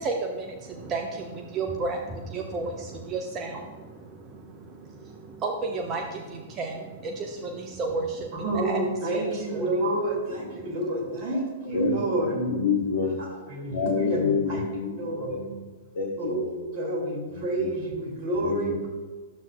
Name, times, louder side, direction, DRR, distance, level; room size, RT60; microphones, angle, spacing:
voice 1, 0.0-10.1 10.5-10.8 11.1-11.3, right 3 dB, 25° right, 2 dB, 0.7 m, -33 dB
voice 2, 8.3-12.6 13.2-14.6 15.0-15.4 16.2-18.9, right 1 dB, 40° right, -2 dB, 2.3 m, -29 dB
voice 3, 11.7-13.3 13.7-15.7 15.9-16.7 17.3-17.7 18.4-18.9, left 6 dB, 60° left, 1 dB, 0.8 m, -29 dB
11.5 x 7.4 x 2.3 m, 1.3 s
figure-of-eight pair, 105°, 0 cm